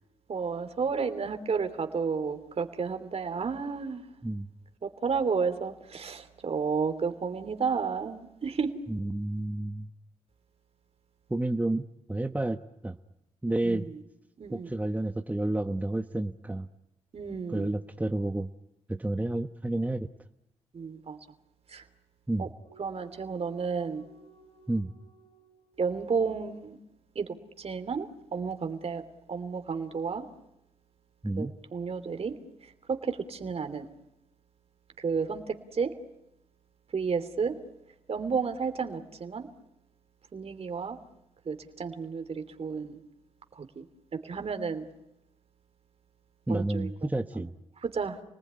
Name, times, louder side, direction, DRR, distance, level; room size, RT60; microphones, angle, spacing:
voice 1, 0.3-4.0 4.8-8.8 13.6-13.8 14.4-14.7 17.1-17.7 20.7-21.2 21.7-21.8 22.4-22.5 22.8-24.1 25.8-26.8 27.1-29.0 29.3-30.3 31.4-32.3 32.9-33.9 35.0-35.9 36.9-37.5 38.1-39.5 40.3-41.0 41.4-43.0 43.6-43.8 44.1-44.9 46.5-46.9 47.8-48.2, right 5 dB, 50° right, 7 dB, 3.0 m, -32 dB
voice 2, 8.9-9.9 11.3-12.6 12.8-13.0 13.4-13.9 14.5-16.7 17.5-18.5 18.9-20.1 22.3-22.5 24.7-24.9 31.2-31.5 46.5-47.5, right 1 dB, 10° right, 8 dB, 1.2 m, -30 dB
sound 1, 22.7-26.8, right 4 dB, 50° left, 5.3 m, -58 dB
29.5 x 19.5 x 9.8 m, 0.87 s
supercardioid pair, 50°, 13 cm